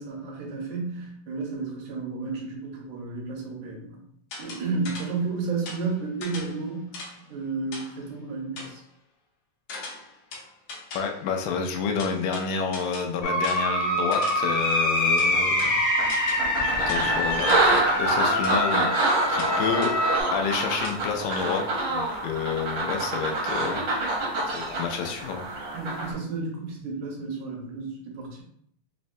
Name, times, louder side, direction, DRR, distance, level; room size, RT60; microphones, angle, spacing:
voice 1, 0.0-4.0 4.4-7.0 7.3-8.8 25.7-28.4, right 4 dB, 80° right, 0 dB, 2.3 m, -32 dB
sound 1, 4.3-5.3 5.7-7.3 7.7-8.1 8.6-8.8 9.7-11.3 12.0-14.6 15.2-16.6 16.9-17.2 17.5-17.7 18.4-18.6 19.4-20.1 20.8-21.0, left 3 dB, 70° left, 1.5 m, -40 dB
voice 2, 10.9-15.8 16.9-18.9 19.3-19.9 20.3-23.8 24.2-24.3 24.5-25.4, left 6 dB, 85° left, 3 dB, 2.1 m, -29 dB
sound 2, 13.2-20.2, left 1 dB, 50° left, 0.6 m, -25 dB
sound 3, 15.3-15.4 16.0-26.1, right 2 dB, 65° right, 1.2 m, -26 dB
5.5 x 2.1 x 2.6 m, 0.66 s
omnidirectional pair, 3.4 m